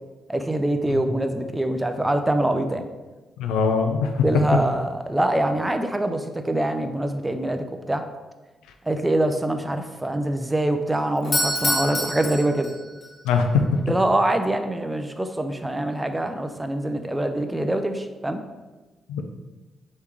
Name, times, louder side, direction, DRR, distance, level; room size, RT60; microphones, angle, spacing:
voice 1, 0.3-2.9 4.2-8.1 8.8-12.7 13.9-18.4, right 1 dB, 15° right, 7 dB, 0.5 m, -24 dB
voice 2, 3.4-4.3 13.2-13.8 19.1-19.2, left 5 dB, 85° left, 5 dB, 0.4 m, -22 dB
Doorbell, 11.2-13.1, left 1 dB, 45° left, 1.3 m, -26 dB
3.3 x 3.1 x 4.8 m, 1.2 s
hypercardioid pair, 45°, 0 cm